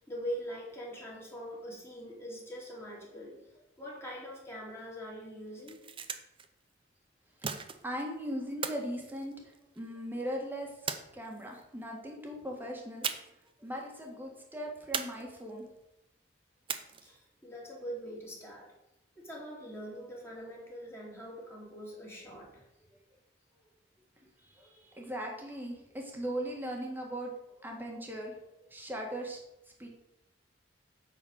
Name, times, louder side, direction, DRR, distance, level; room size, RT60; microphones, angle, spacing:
voice 1, 0.0-3.4 3.8-5.8 17.0-18.7 19.2-22.7, equal, 15° left, -4 dB, 2.4 m, -43 dB
sound 1, 5.6-6.5 7.4-8.1 8.6-9.9 10.9-11.6 13.0-13.5 13.8-13.9 14.9-15.7 16.7-17.2, right 6 dB, 30° right, 0.6 m, -38 dB
voice 2, 7.8-10.9 11.1-13.1 13.6-15.7 24.4-27.3 27.6-29.4 29.8-29.9, equal, 10° right, 0 dB, 1.7 m, -39 dB
8.7 x 4.3 x 6.3 m, 0.87 s
head